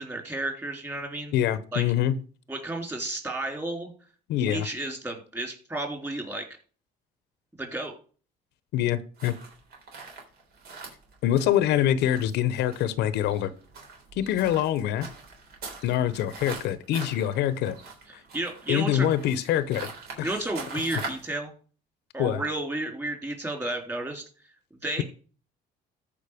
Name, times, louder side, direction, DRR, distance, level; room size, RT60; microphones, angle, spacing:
voice 1, 0.0-1.3 1.7-1.8 2.5-3.9 4.4-6.5 7.6-8.0 18.3-19.1 20.2-21.5 22.1-24.2 24.8-25.0, right 2 dB, 15° right, 2 dB, 3.5 m, -32 dB
voice 2, 1.3-2.2 4.3-4.7 8.7-9.3 11.2-13.5 14.2-15.1 15.8-17.8 18.7-19.9 20.2-20.3 22.2-22.4, left 11 dB, 80° left, 15 dB, 0.8 m, -25 dB
sound 1, 9.2-21.3, right 4 dB, 70° right, 3.7 m, -43 dB
13.5 x 5.2 x 5.0 m, 0.39 s
cardioid pair, 110°, 17 cm